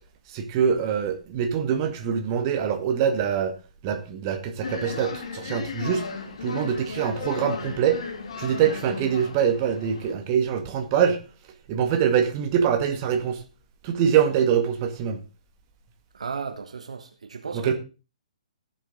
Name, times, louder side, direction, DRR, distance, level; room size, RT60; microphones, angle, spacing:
voice 1, 0.3-3.5 3.8-6.1 6.4-8.0 8.4-11.2 11.7-13.4 13.8-15.2 17.5-17.7, right 8 dB, 30° right, 1.9 m, -24 dB
sound 1, 4.6-10.1, left 5 dB, 50° left, 2.3 m, -35 dB
voice 2, 16.1-17.7, right 5 dB, 60° right, 1.4 m, -34 dB
17.5 x 7.5 x 3.8 m
figure-of-eight pair, 125°, 4 cm